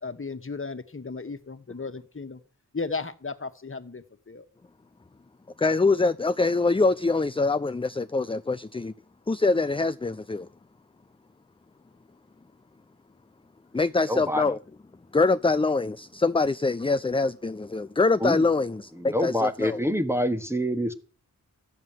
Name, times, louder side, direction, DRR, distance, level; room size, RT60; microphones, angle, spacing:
voice 1, 0.0-2.4 2.7-4.4, left 4 dB, 35° left, 1.7 m, -35 dB
voice 2, 5.6-8.9 9.3-10.5 13.7-14.6 15.1-19.8, left 3 dB, 15° left, 0.6 m, -24 dB
voice 3, 14.1-14.4 18.2-18.4 19.0-20.9, equal, 5° right, 1.5 m, -26 dB
13.5 x 9.5 x 7.5 m
cardioid pair, 50°, 34 cm